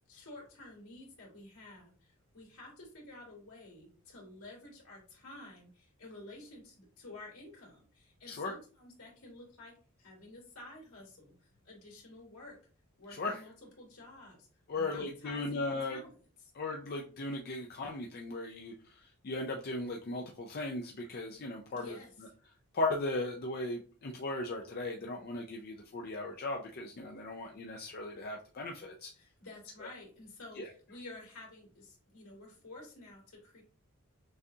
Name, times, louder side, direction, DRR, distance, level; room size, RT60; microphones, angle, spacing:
voice 1, 0.1-9.7 10.0-11.3 11.6-12.6 13.0-14.5 14.7-16.5 21.7-22.3 29.2-33.6, left 2 dB, 75° left, -3 dB, 2.3 m, -51 dB
voice 2, 14.7-16.0 16.6-19.0 19.2-22.0 22.7-29.1 30.6-30.7, left 2 dB, 45° left, 1 dB, 0.4 m, -37 dB
6.2 x 2.4 x 2.7 m, 0.39 s
head